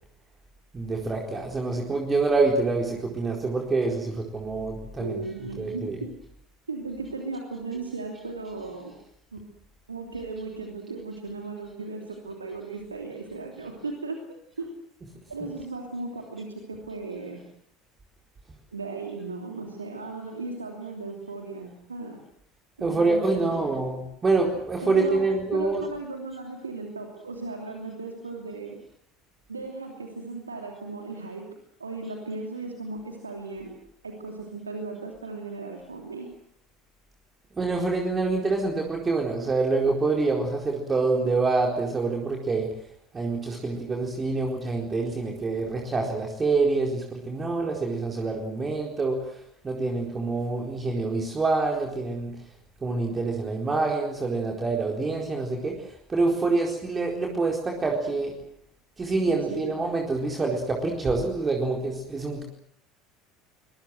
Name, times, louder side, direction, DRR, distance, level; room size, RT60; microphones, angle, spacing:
voice 1, 0.7-5.2 5.6-6.0 22.8-25.8 37.6-42.7 43.1-49.4 49.6-52.3 52.8-58.3 59.0-62.4, right 3 dB, 25° right, 1 dB, 4.3 m, -26 dB
voice 2, 5.0-6.1 6.7-8.9 9.3-9.4 9.9-14.2 14.6-14.7 15.3-17.4 18.7-22.2 22.8-23.8 24.8-25.2 25.5-28.8 29.5-31.5 31.8-33.7 34.0-36.3 59.2-59.7, right 3 dB, 80° right, 2 dB, 2.9 m, -36 dB
24.5 x 22.5 x 7.9 m, 0.70 s
figure-of-eight pair, 65°, 0 cm